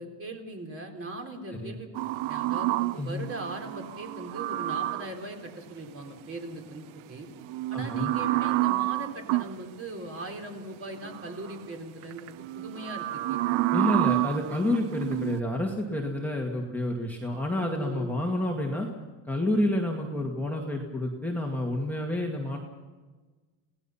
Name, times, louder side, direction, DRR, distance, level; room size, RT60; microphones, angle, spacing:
voice 1, 0.0-1.9 2.3-7.3 7.7-13.6 17.8-18.1, right 2 dB, 30° right, 2 dB, 3.9 m, -39 dB
sound 1, 2.0-5.2 7.4-9.6 11.0-11.6 12.0-15.4, right 17 dB, 90° right, 0.7 m, -29 dB
voice 2, 3.0-3.3 7.7-8.1 13.7-18.9 19.3-22.6, left 1 dB, 5° left, -1 dB, 2.1 m, -29 dB
28.0 x 18.0 x 5.8 m, 1.3 s
cardioid pair, 155°, 48 cm